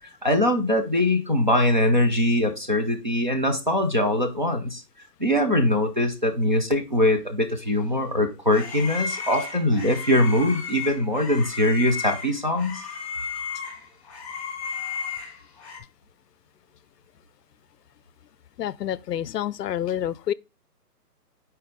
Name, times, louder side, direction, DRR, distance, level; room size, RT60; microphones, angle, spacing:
voice 1, 0.2-4.8 5.2-12.8, left 1 dB, 30° right, 0.6 m, -22 dB
sound 1, 7.9-15.8, left 5 dB, 20° left, 1.5 m, -34 dB
voice 2, 18.6-20.3, left 10 dB, 75° left, 0.5 m, -28 dB
6.5 x 4.5 x 3.8 m
hypercardioid pair, 170°, 49 cm